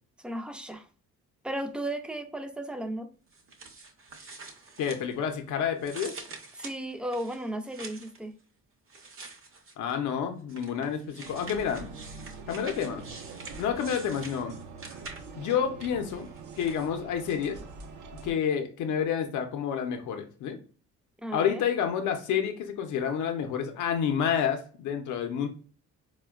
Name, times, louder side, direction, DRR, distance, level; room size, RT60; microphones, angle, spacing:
voice 1, 0.2-0.9 1.4-3.1 6.6-8.3 21.2-21.6, right 1 dB, 5° right, 7 dB, 0.3 m, -35 dB
sound 1, 3.3-5.4 5.8-8.2 8.9-9.9 10.5-15.5 16.1-16.9, right 3 dB, 45° right, 0.7 m, -46 dB
voice 2, 4.8-6.1 9.8-11.9 12.5-13.0 13.6-14.6 15.4-16.3 16.6-17.6 18.2-20.6 21.3-25.5, left 8 dB, 75° left, 6 dB, 0.5 m, -29 dB
sound 2, 11.2-18.3, right 4 dB, 80° right, 0.6 m, -44 dB
4.2 x 2.1 x 2.3 m, 0.39 s
cardioid pair, 90°, 30 cm